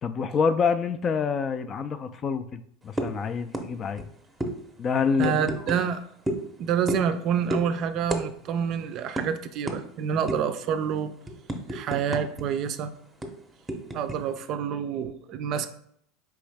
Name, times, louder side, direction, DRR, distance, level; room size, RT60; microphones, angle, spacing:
voice 1, 0.0-4.0 4.8-5.8, left 6 dB, 30° left, 11 dB, 0.3 m, -27 dB
sound 1, 3.0-3.2 3.5-3.7 3.9-4.1 4.4-4.5 5.2-5.8 6.3-6.5 6.9-7.2 7.5-7.7 8.1-8.2 8.5-8.7 9.2-9.3 9.7-9.8 10.3-10.5 11.0-12.4 12.7-12.8 13.2-14.2, right 1 dB, 10° right, 0.7 m, -30 dB
voice 2, 5.2-6.0 6.6-11.1 11.7-12.9 13.9-15.7, right 7 dB, 50° right, 10 dB, 0.4 m, -27 dB
4.7 x 3.0 x 3.4 m, 0.67 s
supercardioid pair, 120°, 0 cm